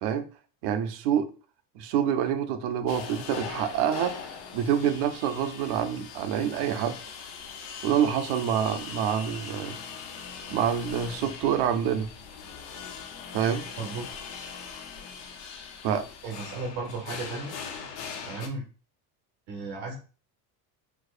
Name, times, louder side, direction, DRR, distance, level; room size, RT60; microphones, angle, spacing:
voice 1, 0.6-1.3 1.7-7.0 7.8-9.8 10.5-12.1 13.3-13.6 15.8-16.0, right 9 dB, 65° right, 9 dB, 0.6 m, -27 dB
sound 1, 2.9-18.5, left 6 dB, 70° left, 0.8 m, -41 dB
voice 2, 16.2-17.5 18.3-18.6 19.5-19.9, right 3 dB, 90° right, -2 dB, 1.2 m, -34 dB
4.5 x 2.1 x 2.4 m, 0.36 s
cardioid pair, 145°, 44 cm